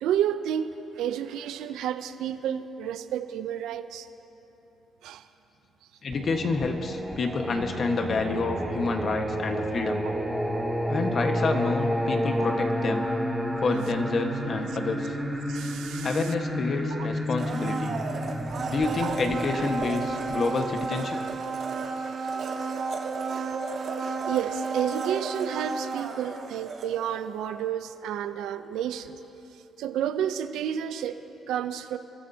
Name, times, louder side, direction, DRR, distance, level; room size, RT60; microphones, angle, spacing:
voice 1, 0.0-4.1 5.0-5.2 10.0-10.1 12.4-12.5 15.5-16.2 16.9-17.1 19.0-19.1 24.2-29.1 29.8-32.0, right 9 dB, 85° right, 10 dB, 0.5 m, -30 dB
voice 2, 6.0-10.0 10.9-13.1 13.6-15.2 16.0-18.0 18.7-21.2, left 3 dB, 50° left, 4 dB, 1.3 m, -28 dB
Singing, 6.1-20.8, equal, ahead, 1.6 m, -30 dB
Domestic sounds home sounds, 17.3-27.3 27.6-27.7, right 4 dB, 60° right, 1.4 m, -32 dB
26.5 x 14.0 x 2.8 m, 3.0 s
cardioid pair, 90°, 0 cm